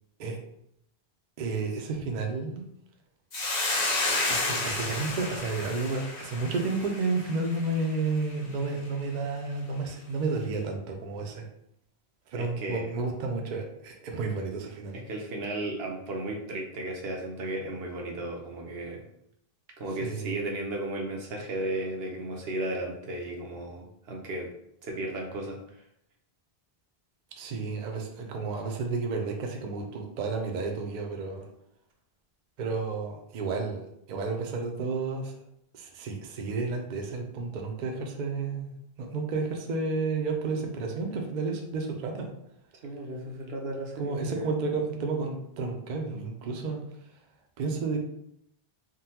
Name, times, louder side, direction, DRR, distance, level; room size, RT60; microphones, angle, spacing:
voice 1, 1.4-2.7 4.3-11.5 12.3-15.0 20.0-20.4 27.4-31.5 32.6-35.3 35.7-42.3 44.0-46.8 47.6-48.0, right 3 dB, 55° right, 2 dB, 0.6 m, -31 dB
Hiss, 3.3-7.8, left 2 dB, 45° left, 0.8 m, -31 dB
voice 2, 12.4-12.9 15.1-19.0 19.8-24.5 24.8-25.8 42.8-44.5, right 1 dB, 80° right, 1 dB, 0.9 m, -34 dB
3.6 x 2.1 x 2.8 m, 0.76 s
omnidirectional pair, 1.0 m